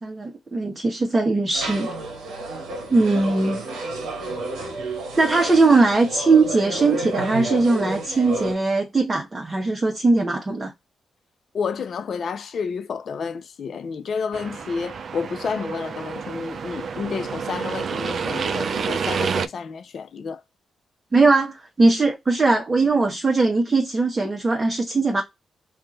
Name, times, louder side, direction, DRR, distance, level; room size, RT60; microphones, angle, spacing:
voice 1, 0.0-1.9 2.9-3.7 5.2-10.7 21.1-25.2, right 3 dB, 35° right, 1.0 m, -20 dB
sound 1, 1.5-8.5, right 2 dB, 80° right, 1.0 m, -31 dB
voice 2, 11.5-20.4, left 5 dB, 65° left, 0.4 m, -30 dB
sound 2, 14.3-19.5, right 6 dB, 65° right, 0.4 m, -28 dB
2.7 x 2.5 x 3.7 m
supercardioid pair, 45°, 0 cm